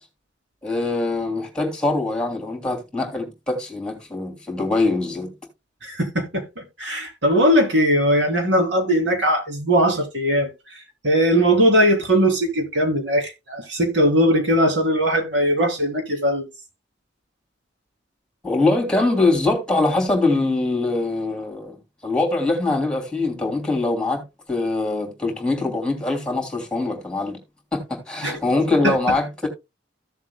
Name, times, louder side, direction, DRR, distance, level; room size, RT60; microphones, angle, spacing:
voice 1, 0.6-5.3 18.4-21.8 22.0-24.2 24.5-27.4 27.7-29.5, left 2 dB, 5° left, 3.0 m, -23 dB
voice 2, 5.8-16.5 28.2-28.4 28.8-29.0, equal, 85° right, 3.2 m, -20 dB
15.5 x 7.3 x 2.2 m
head